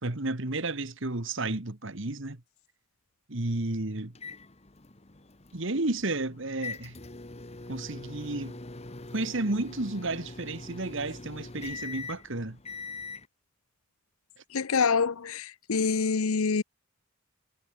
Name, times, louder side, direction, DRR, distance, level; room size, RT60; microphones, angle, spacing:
voice 1, 0.0-2.4 3.3-4.1 5.5-7.0 7.7-8.5 9.1-12.6, right 2 dB, 60° right, 1.8 m, -32 dB
sound 1, 4.1-13.3, left 3 dB, 30° left, 1.4 m, -43 dB
voice 2, 14.5-16.6, left 5 dB, 85° left, 0.7 m, -26 dB
head